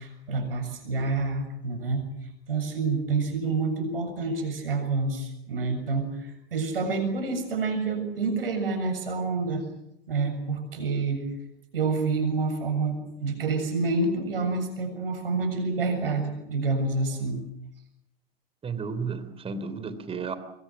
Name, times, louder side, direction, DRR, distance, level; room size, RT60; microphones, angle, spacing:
voice 1, 0.0-2.1 2.5-9.6 10.1-11.3 11.7-17.4, right 3 dB, 70° right, 6 dB, 7.2 m, -28 dB
voice 2, 18.6-20.4, right 5 dB, 20° right, 12 dB, 3.1 m, -33 dB
25.0 x 23.5 x 7.3 m, 0.79 s
figure-of-eight pair, 90°, 30 cm